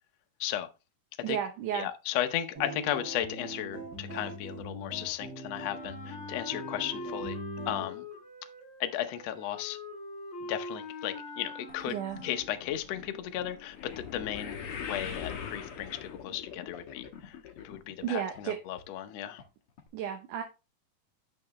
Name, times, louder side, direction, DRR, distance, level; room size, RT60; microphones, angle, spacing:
voice 1, 1.2-1.9 11.9-12.2 18.0-18.6 19.9-20.4, right 9 dB, 70° right, 2.2 m, -33 dB
voice 2, 1.7-7.4 7.7-8.1 8.8-9.8 10.4-17.4 17.6-19.4, left 12 dB, 75° left, 1.5 m, -35 dB
sound 1, 2.6-7.9, right 1 dB, 40° right, 3.1 m, -42 dB
Wind instrument woodwind instrument, 5.7-12.7, left 2 dB, 25° left, 2.1 m, -43 dB
sound 2, 11.7-18.1 18.3-18.8 19.4-19.5 19.8-19.9, left 7 dB, 55° left, 1.7 m, -42 dB
8.8 x 6.6 x 3.1 m
omnidirectional pair, 4.1 m